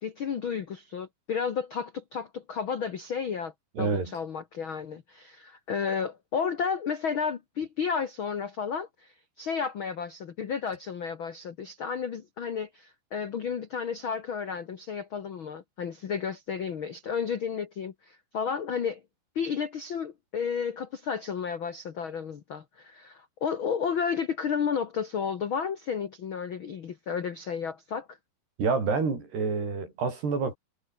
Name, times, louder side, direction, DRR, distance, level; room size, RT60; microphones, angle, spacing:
voice 1, 0.0-3.5 3.8-19.0 19.3-28.2, left 6 dB, 85° left, 1.1 m, -32 dB
voice 2, 3.8-4.2 28.6-30.6, right 4 dB, 85° right, 9.2 m, -28 dB
omnidirectional pair, 4.6 m